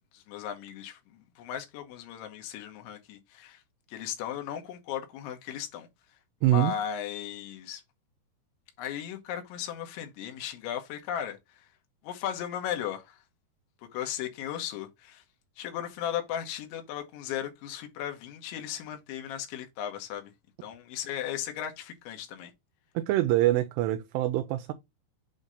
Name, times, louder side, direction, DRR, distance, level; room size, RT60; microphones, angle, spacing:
voice 1, 0.1-3.6 3.9-5.9 6.5-7.8 8.8-11.7 12.0-13.2 13.9-15.2 15.6-20.3 20.6-22.5, left 10 dB, 90° left, 3.5 m, -36 dB
voice 2, 6.4-6.7 23.0-24.7, right 14 dB, 80° right, 2.6 m, -25 dB
8.0 x 2.8 x 5.0 m
omnidirectional pair, 5.2 m